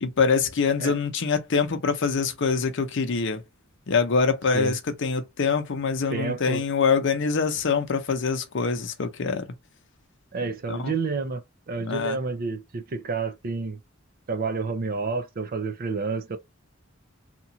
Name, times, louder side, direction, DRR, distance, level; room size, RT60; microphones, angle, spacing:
voice 1, 0.0-3.4 3.9-9.5 10.7-10.9 11.8-12.2, left 5 dB, 60° left, 0.7 m, -24 dB
voice 2, 6.1-6.6 10.3-13.8 14.3-16.4, right 4 dB, 45° right, 0.5 m, -29 dB
2.9 x 2.3 x 2.7 m
head